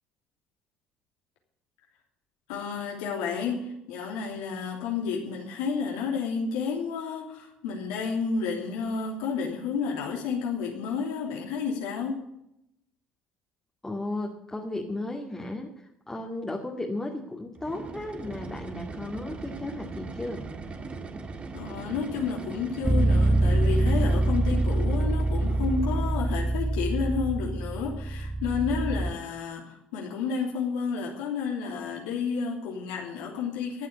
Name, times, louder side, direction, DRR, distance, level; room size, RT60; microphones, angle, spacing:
voice 1, 2.5-12.2 21.5-33.9, left 5 dB, 85° left, -1 dB, 3.0 m, -31 dB
voice 2, 13.8-20.5, left 2 dB, 15° left, -1 dB, 2.2 m, -35 dB
sound 1, 17.6-26.3, right 3 dB, 35° right, 1.8 m, -40 dB
Bass guitar, 22.8-29.1, right 2 dB, 20° right, 1.5 m, -25 dB
14.0 x 8.2 x 8.2 m, 0.81 s
supercardioid pair, 75°, 3 cm